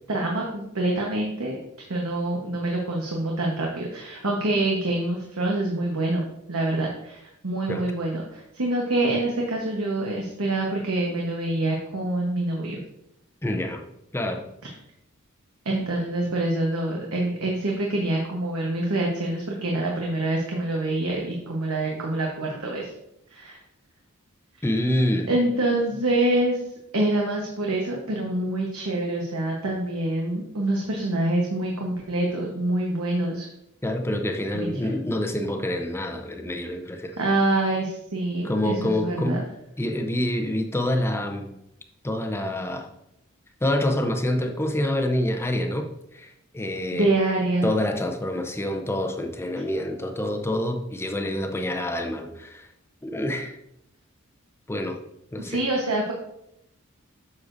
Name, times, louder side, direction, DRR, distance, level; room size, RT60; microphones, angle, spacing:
voice 1, 0.1-1.6 1.9-7.2 7.4-12.8 15.6-22.9 23.3-23.6 25.3-26.6 26.9-33.5 34.5-34.9 37.2-39.4 46.9-47.7 55.4-56.1, right 2 dB, 75° right, -1 dB, 1.1 m, -26 dB
voice 2, 13.4-13.8 14.1-14.5 24.6-25.3 33.8-37.2 38.4-39.4 39.8-41.6 42.0-42.9 43.6-47.1 47.6-52.7 53.0-53.6 54.7-55.0 55.3-55.6, left 1 dB, 10° left, 5 dB, 0.6 m, -27 dB
8.3 x 6.4 x 2.6 m, 0.81 s
head